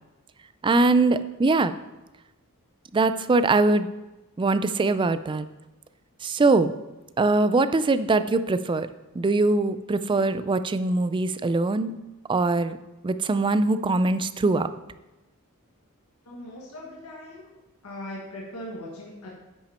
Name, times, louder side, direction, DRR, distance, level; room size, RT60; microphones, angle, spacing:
voice 1, 0.6-1.7 2.9-3.9 4.4-5.5 6.2-6.7 7.2-8.9 9.1-11.9 12.3-12.8 13.0-14.7, right 3 dB, 20° right, 12 dB, 0.3 m, -22 dB
voice 2, 16.2-17.5 17.8-19.3, left 1 dB, 70° left, -4 dB, 1.6 m, -39 dB
10.0 x 5.8 x 4.3 m, 1.1 s
head